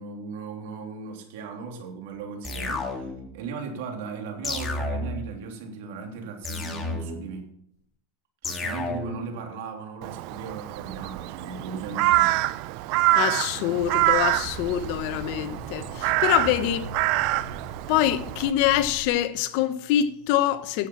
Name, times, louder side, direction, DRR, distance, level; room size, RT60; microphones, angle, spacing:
voice 1, 0.0-7.5 8.4-13.2 13.5-13.6, right 4 dB, 75° right, 3.2 m, -37 dB
sound 1, 2.4-3.3 4.4-5.3 6.4-7.3 8.4-9.3, left 2 dB, 20° left, 2.1 m, -31 dB
Crow, 10.0-18.5, right 17 dB, 55° right, 0.5 m, -26 dB
voice 2, 13.1-16.9 17.9-20.9, left 12 dB, 60° left, 1.0 m, -25 dB
sound 2, 13.7-19.1, right 1 dB, ahead, 4.6 m, -41 dB
11.5 x 7.6 x 7.4 m
supercardioid pair, 135°, 0 cm